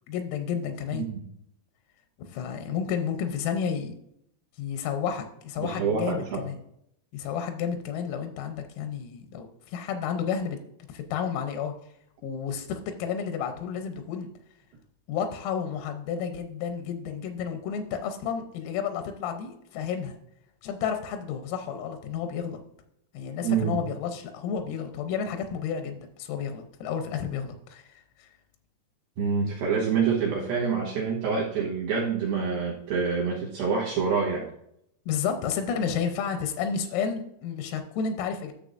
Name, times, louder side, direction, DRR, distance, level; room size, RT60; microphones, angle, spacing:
voice 1, 0.1-1.0 2.2-3.9 4.6-6.6 7.1-10.6 10.9-11.7 12.2-14.3 15.1-20.2 20.6-22.6 23.1-27.8 28.2-28.3 35.1-38.5, left 7 dB, 85° left, 6 dB, 3.5 m, -31 dB
voice 2, 5.6-6.4 23.4-23.8 29.2-34.5, right 5 dB, 75° right, -3 dB, 2.2 m, -27 dB
12.0 x 6.8 x 2.5 m, 0.74 s
omnidirectional pair, 5.9 m